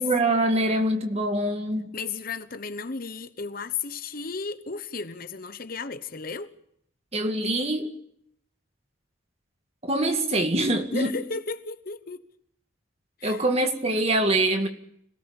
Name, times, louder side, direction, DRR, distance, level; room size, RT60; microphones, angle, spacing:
voice 1, 0.0-1.9 7.1-7.9 9.8-11.1 13.2-14.7, right 1 dB, 30° right, 2.1 m, -24 dB
voice 2, 1.9-6.5 10.9-12.3 13.2-13.4, left 4 dB, 45° left, 1.0 m, -34 dB
26.5 x 18.0 x 7.1 m
head